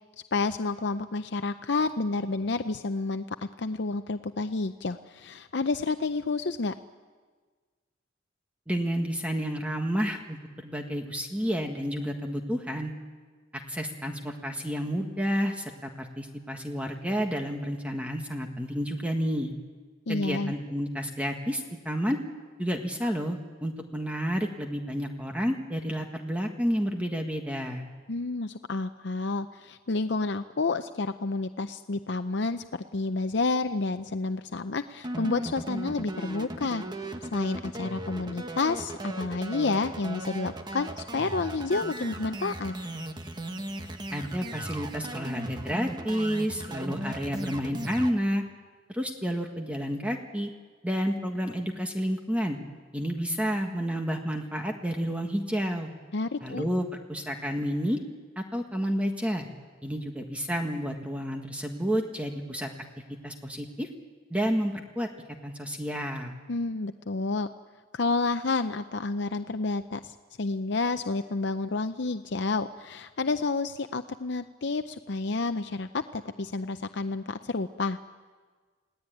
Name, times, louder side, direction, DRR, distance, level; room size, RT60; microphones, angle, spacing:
voice 1, 0.3-6.7 20.1-20.5 28.1-32.6 32.9-36.8 37.2-42.8 56.1-56.6 66.5-67.5 67.9-78.0, left 3 dB, 60° left, 9 dB, 0.7 m, -30 dB
voice 2, 8.7-12.9 13.5-19.5 20.1-22.2 22.6-27.8 44.1-48.4 48.9-50.5 50.8-52.6 52.9-55.9 56.4-58.0 58.4-59.5 59.8-62.7 63.2-63.9 64.3-65.1 65.4-66.3, equal, 5° right, 3 dB, 1.5 m, -30 dB
sound 1, 35.0-48.1, right 1 dB, 25° right, 1.5 m, -37 dB
30.0 x 17.5 x 9.2 m, 1.5 s
head